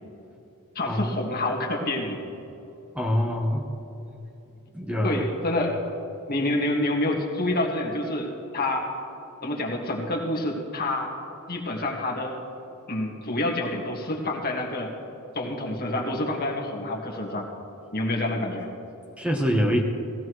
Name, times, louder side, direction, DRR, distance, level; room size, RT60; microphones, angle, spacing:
voice 1, 0.8-2.2 5.0-5.8 6.3-8.9 9.4-11.1 11.5-12.4 12.9-14.9 15.3-17.5 17.9-18.7, left 1 dB, 45° left, 0 dB, 1.8 m, -27 dB
voice 2, 2.9-3.7 4.7-5.3 19.2-19.8, equal, 5° right, 1 dB, 0.9 m, -24 dB
18.0 x 16.0 x 3.1 m, 3.0 s
head